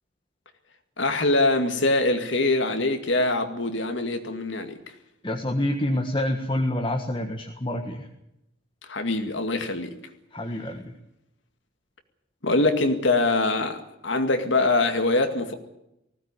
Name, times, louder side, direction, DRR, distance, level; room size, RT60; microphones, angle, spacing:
voice 1, 1.0-4.8 8.9-9.9 12.4-15.5, left 2 dB, 70° left, 2.1 m, -23 dB
voice 2, 5.2-8.1 10.3-10.9, left 1 dB, 25° left, 1.6 m, -27 dB
19.5 x 16.5 x 9.7 m
head